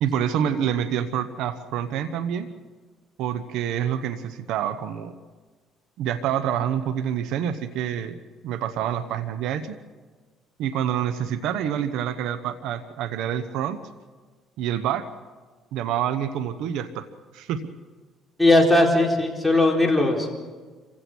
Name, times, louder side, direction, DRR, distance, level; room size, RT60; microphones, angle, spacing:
voice 1, 0.0-2.5 3.2-5.1 6.0-9.8 10.6-13.8 14.6-15.1 15.7-17.1 17.3-17.6, right 9 dB, 80° right, 11 dB, 1.0 m, -27 dB
voice 2, 18.4-20.3, left 2 dB, 5° left, 0 dB, 4.2 m, -18 dB
27.0 x 16.5 x 6.2 m, 1.4 s
cardioid pair, 85°, 0 cm